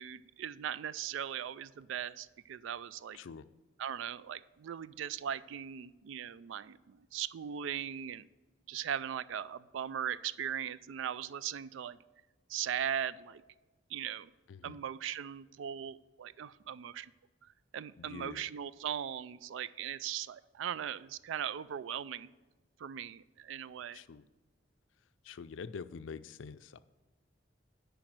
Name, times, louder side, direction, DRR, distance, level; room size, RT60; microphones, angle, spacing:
voice 1, 0.0-3.2 3.8-8.3 8.7-12.0 12.5-13.4 13.9-14.3 14.6-17.1 17.7-22.3 22.8-24.0, right 9 dB, 80° right, 18 dB, 0.3 m, -39 dB
voice 2, 3.1-3.5 14.5-14.8 18.0-18.5 23.9-24.2 25.2-26.8, left 5 dB, 80° left, 14 dB, 0.4 m, -46 dB
8.9 x 5.2 x 6.0 m, 1.2 s
head